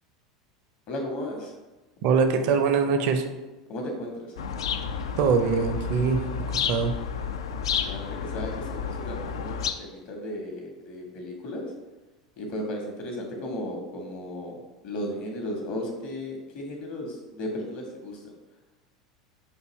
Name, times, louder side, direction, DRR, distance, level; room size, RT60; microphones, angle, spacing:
voice 1, 0.9-1.5 3.7-4.3 7.8-11.7 12.4-14.6 14.8-18.3, left 1 dB, 45° left, 1 dB, 1.1 m, -35 dB
voice 2, 2.0-3.2 5.2-6.2 6.5-6.9, right 5 dB, 50° right, 6 dB, 0.5 m, -23 dB
sound 1, 4.4-9.7, left 7 dB, 65° left, 0.3 m, -31 dB
6.1 x 2.7 x 3.1 m, 1.1 s
figure-of-eight pair, 80°, 3 cm